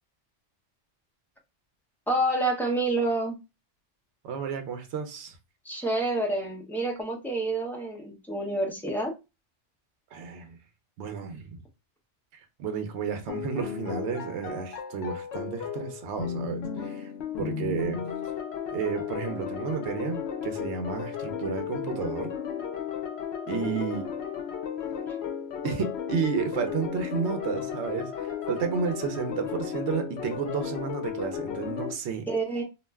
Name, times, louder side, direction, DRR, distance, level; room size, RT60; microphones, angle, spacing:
voice 1, 2.1-3.4 5.6-9.1 23.5-23.8 32.3-32.6, right 2 dB, 5° left, 0.4 m, -28 dB
voice 2, 4.2-5.3 10.1-10.6 11.0-11.6 12.6-17.1 17.4-18.0 18.7-22.3 23.5-24.1 25.6-32.3, right 6 dB, 75° right, 0.9 m, -32 dB
sound 1, 13.3-31.9, left 8 dB, 70° left, 0.8 m, -34 dB
2.5 x 2.1 x 3.3 m
omnidirectional pair, 1.2 m